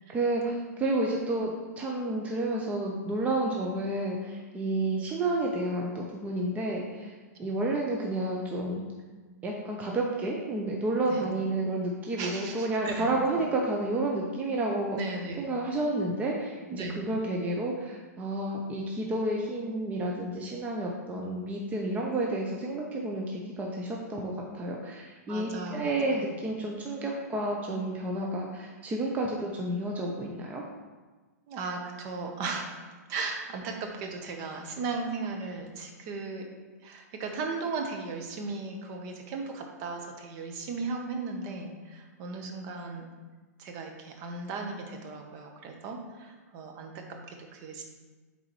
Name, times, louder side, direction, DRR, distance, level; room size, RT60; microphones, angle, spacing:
voice 1, 0.1-7.1 7.4-8.8 9.4-15.0 15.4-30.6, right 2 dB, 15° right, -1 dB, 0.7 m, -30 dB
voice 2, 12.2-13.2 15.0-15.4 16.7-17.0 25.3-26.3 31.5-32.8 33.1-36.5 36.8-43.1 43.6-47.8, right 3 dB, 40° right, 3 dB, 1.0 m, -36 dB
8.6 x 4.0 x 3.1 m, 1.3 s
hypercardioid pair, 130°, 9 cm